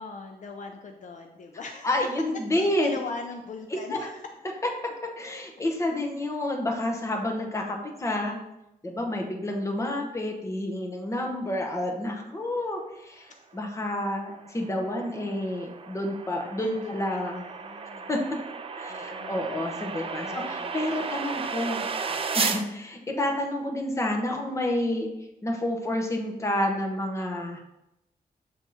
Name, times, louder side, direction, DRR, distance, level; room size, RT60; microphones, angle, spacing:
voice 1, 0.0-2.0 2.5-4.3 13.5-13.7 14.7-14.8 16.6-18.1 18.9-21.4 22.1-22.2, left 4 dB, 55° left, 4 dB, 0.4 m, -41 dB
voice 2, 1.8-3.0 3.9-4.1 4.8-8.4 8.8-17.4 18.1-18.2 18.7-21.8 22.3-25.1 25.4-27.6, left 1 dB, 20° left, 1 dB, 0.8 m, -29 dB
sound 1, 14.0-22.6, right 5 dB, 35° right, 0.4 m, -34 dB
6.8 x 3.5 x 3.9 m, 0.87 s
wide cardioid pair, 175°, 16 cm